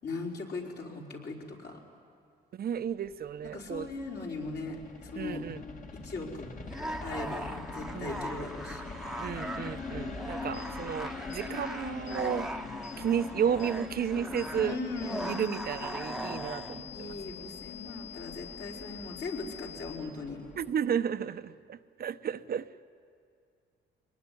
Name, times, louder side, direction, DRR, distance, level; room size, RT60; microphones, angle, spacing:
voice 1, 0.0-1.8 3.5-5.5 5.9-6.5 7.0-8.8 14.6-15.3 16.9-20.4, left 3 dB, 60° left, -2 dB, 4.5 m, -39 dB
voice 2, 2.5-3.9 5.2-5.6 7.9-8.1 9.2-12.7 13.0-14.8 15.3-17.2 20.6-22.8, right 8 dB, 50° right, 12 dB, 0.8 m, -33 dB
sound 1, 3.1-20.7, left 4 dB, 40° left, 2.1 m, -43 dB
sound 2, 6.6-16.8, right 1 dB, ahead, 1.1 m, -40 dB
sound 3, 10.5-10.7 11.3-11.5 12.1-12.2 12.8-13.0 13.6-13.8 14.4-14.5 15.0-20.0, left 9 dB, 75° left, 7.6 m, -47 dB
24.0 x 19.5 x 9.9 m, 2.3 s
cardioid pair, 90°, 20 cm